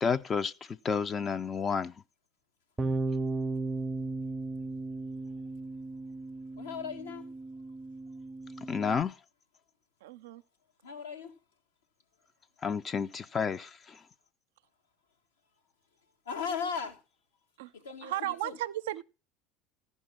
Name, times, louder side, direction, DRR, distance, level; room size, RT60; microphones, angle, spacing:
voice 1, 0.0-1.9 8.7-9.1 12.6-14.0, left 6 dB, 35° left, 0.5 m, -31 dB
Bass guitar, 2.8-9.0, right 3 dB, 15° right, 0.6 m, -36 dB
voice 2, 6.5-7.3 10.8-11.3 16.2-17.0 17.7-18.6, left 6 dB, 85° left, 1.5 m, -37 dB
voice 3, 10.0-10.4 17.6-17.7 18.0-19.0, right 14 dB, 75° right, 0.5 m, -35 dB
14.0 x 5.5 x 5.9 m
hypercardioid pair, 75°, 0 cm